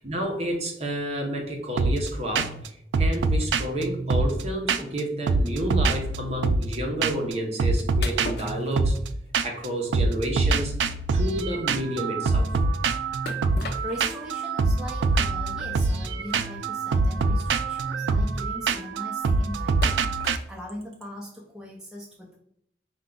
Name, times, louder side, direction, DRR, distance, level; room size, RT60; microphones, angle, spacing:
voice 1, 0.0-8.9 9.4-12.5, right 1 dB, 35° right, 1 dB, 0.8 m, -30 dB
sound 1, 1.8-2.1 2.3-2.7 2.9-5.0 5.3-6.7 7.0-7.3 7.6-9.7 9.9-20.4, right 3 dB, 85° right, 0.3 m, -25 dB
sound 2, 8.0-9.3 9.7-9.9 10.3-10.4 10.8-10.9 11.1-11.3 13.3-14.3 15.0-15.1 16.2-16.4 17.2-17.3 17.6-17.8 19.8-20.5, left 3 dB, 60° left, 0.5 m, -38 dB
voice 2, 13.6-20.2 20.5-22.3, equal, 5° right, -3 dB, 0.6 m, -40 dB
4.6 x 2.3 x 3.8 m, 0.72 s
head